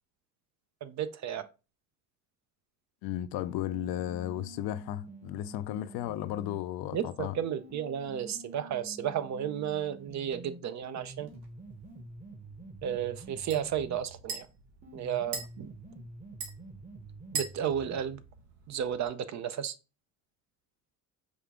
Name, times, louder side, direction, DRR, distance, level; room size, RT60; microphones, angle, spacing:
voice 1, 0.8-1.5 6.9-11.3 12.8-14.5 14.9-15.7 17.3-18.2 18.7-19.7, right 9 dB, 45° right, 0.5 m, -33 dB
voice 2, 3.0-7.4, left 13 dB, 65° left, 0.5 m, -34 dB
sound 1, 3.3-6.6 7.3-14.3 14.8-18.3, right 2 dB, 15° right, 0.9 m, -48 dB
sound 2, 11.3-19.1, right 5 dB, 75° right, 1.5 m, -44 dB
5.1 x 2.4 x 3.5 m
supercardioid pair, 85°, 40 cm